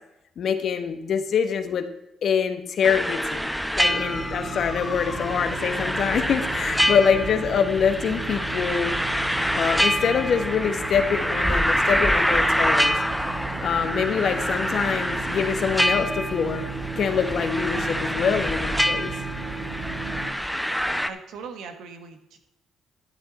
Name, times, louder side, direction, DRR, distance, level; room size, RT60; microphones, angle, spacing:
voice 1, 0.4-1.9 2.2-3.5 3.8-8.9 9.5-13.0 13.6-16.7 17.0-19.1, left 7 dB, 60° left, 8 dB, 1.2 m, -25 dB
sound 1, 2.8-21.1, equal, ahead, 0.7 m, -26 dB
Motor vehicle (road) / Siren, 3.4-12.0, left 4 dB, 35° left, 2.6 m, -42 dB
sound 2, 3.8-20.3, right 3 dB, 55° right, 3.8 m, -35 dB
voice 2, 21.1-22.4, right 5 dB, 85° right, 6 dB, 1.5 m, -40 dB
12.0 x 8.3 x 4.1 m, 0.87 s
cardioid pair, 90°, 0 cm